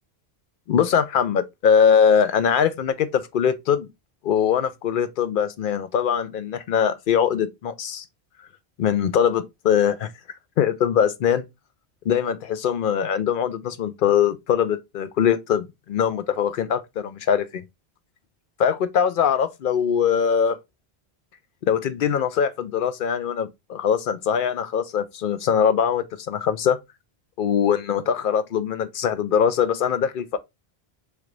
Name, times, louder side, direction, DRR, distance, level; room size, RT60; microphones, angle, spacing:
voice 1, 0.7-3.9 4.2-8.0 8.8-10.1 10.6-11.4 12.1-17.6 18.6-20.6 21.7-26.8 27.4-30.4, left 8 dB, 60° left, 0.6 m, -22 dB
3.8 x 3.2 x 3.1 m
omnidirectional pair, 1.1 m